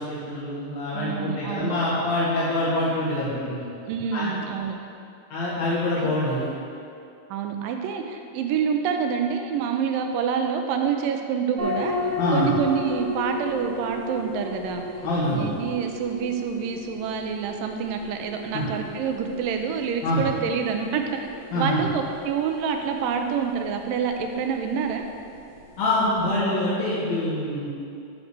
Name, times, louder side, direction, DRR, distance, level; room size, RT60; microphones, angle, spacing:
voice 1, 0.0-3.6 4.1-4.3 5.3-6.5 12.2-12.5 15.0-15.4 18.5-18.6 20.0-20.2 21.5-21.8 25.8-27.6, left 1 dB, 75° left, -9 dB, 3.7 m, -25 dB
voice 2, 0.9-1.7 3.9-4.8 6.0-6.1 7.3-14.8 15.3-21.3 21.5-25.0, right 6 dB, 80° right, 4 dB, 2.1 m, -27 dB
sound 1, 11.6-26.4, left 2 dB, 45° right, 2.0 m, -35 dB
11.0 x 4.3 x 6.6 m, 2.6 s
omnidirectional pair, 4.3 m